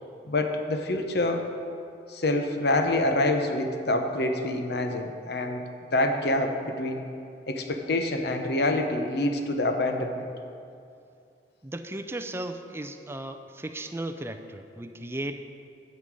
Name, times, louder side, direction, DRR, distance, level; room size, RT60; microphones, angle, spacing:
voice 1, 0.2-1.5 2.1-5.6 5.9-7.1 7.5-10.3, left 2 dB, 60° left, 5 dB, 0.8 m, -26 dB
voice 2, 11.6-15.5, right 1 dB, 15° right, 6 dB, 0.4 m, -36 dB
9.4 x 5.5 x 8.0 m, 2.5 s
head